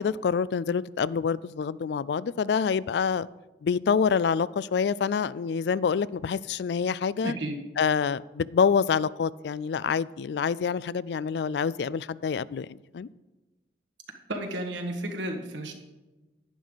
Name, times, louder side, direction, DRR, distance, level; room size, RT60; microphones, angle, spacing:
voice 1, 0.0-3.3 3.6-7.3 7.8-12.7 12.9-13.1, left 6 dB, 70° left, 0.3 m, -26 dB
voice 2, 7.2-7.6 14.3-15.7, right 1 dB, 90° right, 1.7 m, -32 dB
11.0 x 10.5 x 4.0 m
head